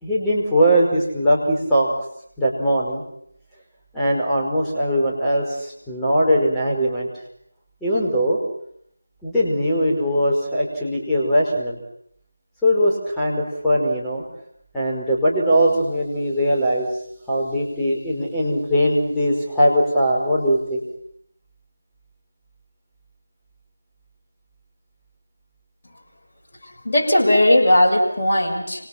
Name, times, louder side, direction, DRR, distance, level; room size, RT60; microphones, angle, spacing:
voice 1, 0.0-1.9 2.4-3.0 3.9-7.1 7.8-8.4 9.2-11.8 12.6-14.2 14.7-16.9 17.3-20.8, equal, 5° left, -7 dB, 5.1 m, -20 dB
voice 2, 26.6-28.9, left 1 dB, 40° left, -1 dB, 6.4 m, -18 dB
29.5 x 27.0 x 6.0 m, 0.71 s
figure-of-eight pair, 165°, 0 cm